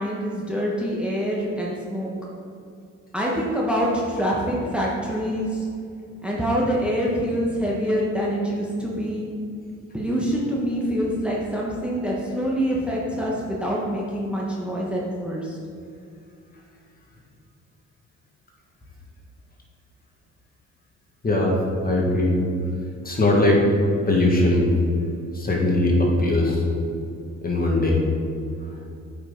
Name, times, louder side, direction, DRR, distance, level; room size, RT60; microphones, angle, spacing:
voice 1, 0.0-2.1 3.1-5.6 6.2-9.3 9.9-15.6, equal, 5° right, -4 dB, 1.2 m, -25 dB
voice 2, 21.2-21.6 21.8-22.3 23.0-23.6 24.1-24.7 25.3-26.6 27.4-28.0, left 2 dB, 30° left, -1 dB, 1.7 m, -20 dB
8.7 x 5.4 x 3.8 m, 2.4 s
cardioid pair, 90°, 30 cm